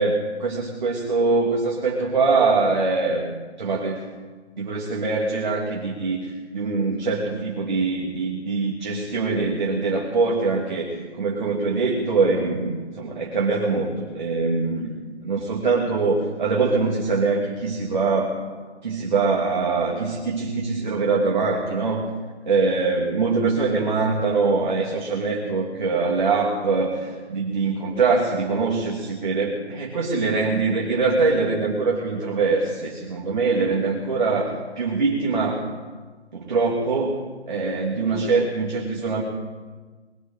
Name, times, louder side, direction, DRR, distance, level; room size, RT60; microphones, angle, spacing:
voice 1, 0.0-3.2 3.6-4.0 4.6-14.9 15.2-18.4 18.8-22.1 22.4-35.7 36.3-37.2 37.5-39.2, right 4 dB, 45° right, -2 dB, 2.6 m, -23 dB
22.0 x 14.5 x 3.9 m, 1.4 s
figure-of-eight pair, 165°, 33 cm